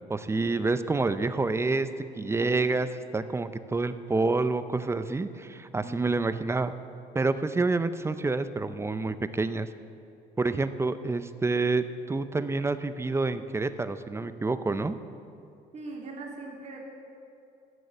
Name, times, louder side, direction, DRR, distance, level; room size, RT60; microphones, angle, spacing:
voice 1, 0.1-1.9 2.2-2.9 3.1-6.7 7.1-9.7 10.4-15.0, right 3 dB, 15° right, 12 dB, 0.5 m, -28 dB
voice 2, 2.2-2.5 5.8-6.0 15.7-16.8, right 3 dB, 40° right, -1 dB, 2.4 m, -41 dB
14.0 x 6.3 x 7.9 m, 2.5 s
cardioid pair, 110°, 17 cm